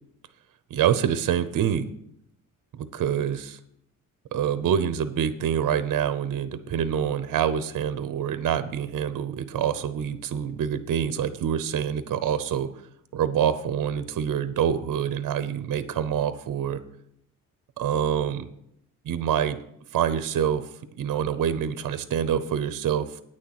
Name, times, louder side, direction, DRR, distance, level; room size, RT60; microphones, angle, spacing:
voice 1, 0.7-1.9 2.8-3.6 4.3-12.9 13.1-16.8 17.8-18.5 19.0-19.6 19.9-20.7 21.0-23.2, right 9 dB, 65° right, 12 dB, 0.8 m, -26 dB
9.2 x 6.5 x 7.6 m, 0.73 s
wide cardioid pair, 165°, 34 cm